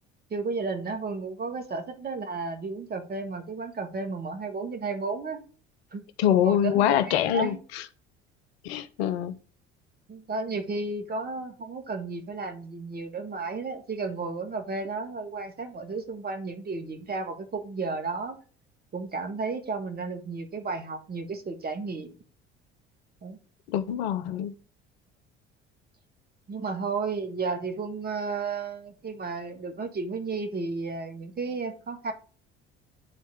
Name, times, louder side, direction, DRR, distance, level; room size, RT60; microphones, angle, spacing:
voice 1, 0.3-5.4 5.9-6.1 6.4-7.6 10.1-18.4 18.9-22.1 23.2-23.4 26.5-32.1, right 4 dB, 30° right, 1.7 m, -33 dB
voice 2, 6.2-7.8 8.6-9.3 23.7-24.5, left 10 dB, 70° left, 0.7 m, -25 dB
9.6 x 4.1 x 3.5 m
figure-of-eight pair, 60°, 32 cm